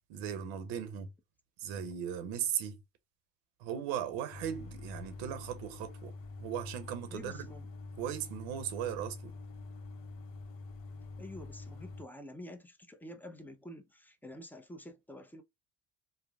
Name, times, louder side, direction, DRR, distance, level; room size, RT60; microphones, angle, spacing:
voice 1, 0.1-1.1 1.6-2.8 3.6-6.1 6.4-7.5 8.0-9.3, right 9 dB, 85° right, 0.7 m, -37 dB
sound 1, 4.3-12.1, left 3 dB, 80° left, 0.7 m, -46 dB
voice 2, 7.1-7.7 11.2-15.4, left 1 dB, 5° left, 0.4 m, -48 dB
3.2 x 2.0 x 2.2 m
supercardioid pair, 85°, 44 cm